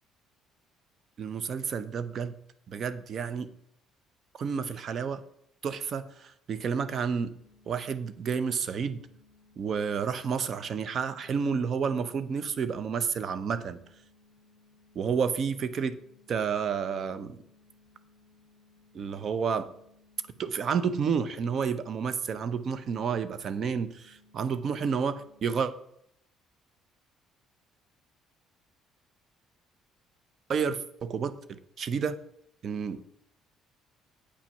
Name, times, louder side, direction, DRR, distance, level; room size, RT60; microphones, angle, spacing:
voice 1, 1.2-2.3 2.7-3.5 4.4-5.2 5.6-7.3 7.7-9.0 9.6-13.8 14.9-16.0 16.3-17.4 18.9-19.7 20.4-25.7 30.5-32.2 32.6-33.0, right 6 dB, 50° right, 13 dB, 0.8 m, -30 dB
sound 1, 6.8-25.5, left 3 dB, 80° right, 3.4 m, -62 dB
8.4 x 6.0 x 5.7 m, 0.73 s
supercardioid pair, 65°, 0 cm